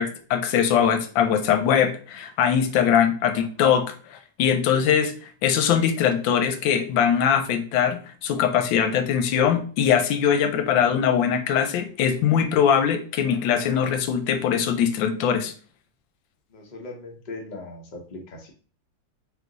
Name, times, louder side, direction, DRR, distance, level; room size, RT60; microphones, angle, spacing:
voice 1, 0.0-5.1 5.4-15.5, left 8 dB, 85° left, 7 dB, 1.4 m, -21 dB
voice 2, 16.5-18.5, left 2 dB, 35° left, 0 dB, 0.7 m, -39 dB
3.9 x 2.8 x 3.8 m, 0.41 s
omnidirectional pair, 2.0 m